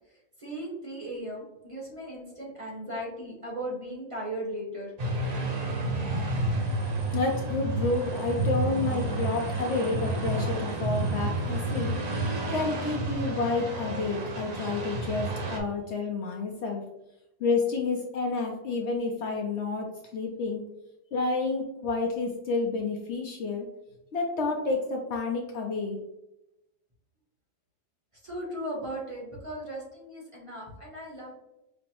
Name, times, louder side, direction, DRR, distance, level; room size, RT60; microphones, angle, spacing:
voice 1, 0.1-4.9 28.2-31.3, right 1 dB, 25° right, -4 dB, 0.9 m, -37 dB
sound 1, 5.0-15.6, right 2 dB, 45° right, 0.6 m, -30 dB
voice 2, 7.1-11.9 12.5-16.8 17.4-20.6 21.1-23.7 24.1-26.0, left 3 dB, 65° left, 1 dB, 0.8 m, -29 dB
5.3 x 2.0 x 2.8 m, 0.90 s
omnidirectional pair, 1.4 m